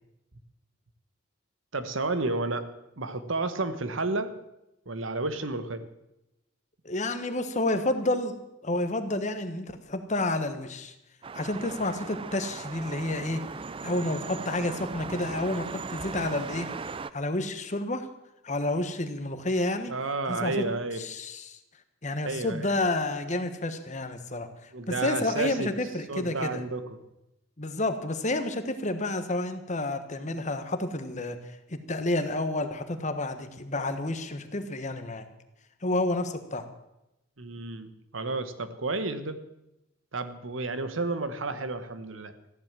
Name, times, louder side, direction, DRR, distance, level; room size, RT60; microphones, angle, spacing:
voice 1, 1.7-4.3 4.9-5.9 19.9-21.0 22.2-22.6 24.7-25.7 26.1-27.0 37.4-39.4 40.1-42.3, right 3 dB, 85° right, 11 dB, 1.2 m, -31 dB
voice 2, 6.8-10.9 11.3-13.4 13.8-16.7 17.1-18.1 18.4-19.9 20.3-20.6 21.0-21.6 22.0-24.5 24.9-26.6 27.6-31.4 31.7-35.2 35.8-36.7, left 2 dB, 40° left, 9 dB, 1.3 m, -30 dB
sound 1, 11.2-17.1, right 4 dB, 25° right, 0.4 m, -38 dB
14.5 x 10.5 x 7.4 m, 0.89 s
head